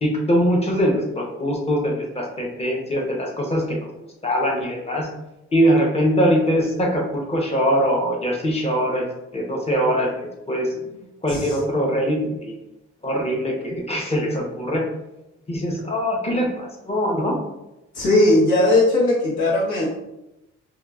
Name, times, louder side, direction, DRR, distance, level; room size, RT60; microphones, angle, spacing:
voice 1, 0.0-3.9 4.2-5.1 5.5-9.1 9.3-10.1 10.5-10.7 11.2-12.6 13.0-14.8 15.5-17.3, equal, 20° left, 0 dB, 0.7 m, -22 dB
voice 2, 17.9-19.9, left 1 dB, 80° left, -6 dB, 1.1 m, -18 dB
2.9 x 2.3 x 2.3 m, 0.93 s
supercardioid pair, 65°, 29 cm